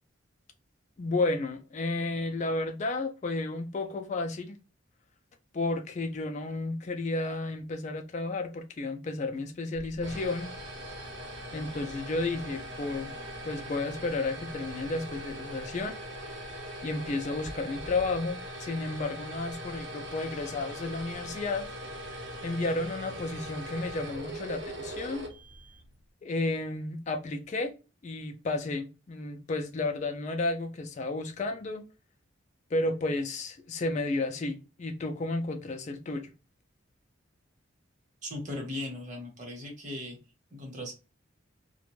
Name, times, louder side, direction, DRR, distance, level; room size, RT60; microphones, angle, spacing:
voice 1, 1.0-4.6 5.5-10.5 11.5-13.1 13.4-16.0 16.8-21.7 22.0-22.1 22.4-25.3 26.2-27.7 28.0-31.9 32.7-36.3, left 2 dB, 35° left, 0.3 m, -32 dB
sound 1, 9.7-25.9, equal, 60° right, 0.8 m, -41 dB
voice 2, 38.2-40.2 40.5-40.9, left 1 dB, 40° right, 1.0 m, -38 dB
2.5 x 2.1 x 3.0 m
head